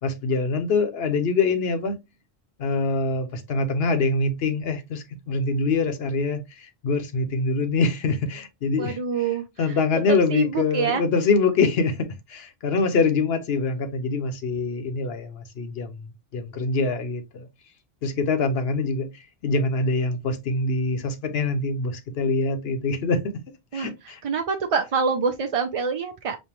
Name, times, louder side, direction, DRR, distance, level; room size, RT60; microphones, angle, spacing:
voice 1, 0.0-1.9 2.6-9.0 9.6-17.5 18.0-19.1 19.4-23.2 23.7-23.9, left 3 dB, 70° left, 1.0 m, -24 dB
voice 2, 8.8-9.8 10.1-11.0 23.7-26.4, right 5 dB, 50° right, 0.4 m, -26 dB
5.3 x 2.2 x 2.9 m
omnidirectional pair, 1.1 m